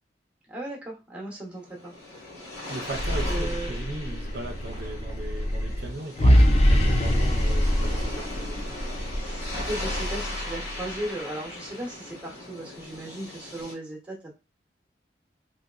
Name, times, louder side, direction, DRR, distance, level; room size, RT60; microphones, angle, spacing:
voice 1, 0.5-1.9 3.2-3.8 9.1-14.3, right 1 dB, 5° right, 0.8 m, -36 dB
sound 1, 1.5-13.7, left 2 dB, 55° left, 1.3 m, -39 dB
voice 2, 2.6-8.7, right 2 dB, 60° right, 0.5 m, -38 dB
sound 2, 2.8-10.9, equal, 35° left, 0.4 m, -24 dB
3.0 x 2.8 x 2.4 m
head